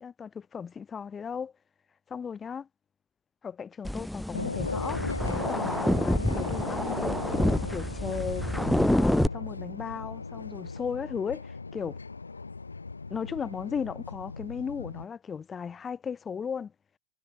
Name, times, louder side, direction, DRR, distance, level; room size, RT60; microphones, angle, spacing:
voice 1, 0.0-1.5 2.1-2.7 3.4-5.0 5.3-7.2 7.6-8.5 8.9-12.0 13.1-16.7, left 6 dB, 20° left, 1.8 m, -36 dB
sound 1, 3.8-9.3, equal, ahead, 0.3 m, -28 dB
sound 2, 4.3-15.0, left 4 dB, 80° left, 0.6 m, -37 dB
figure-of-eight pair, 90°, 0 cm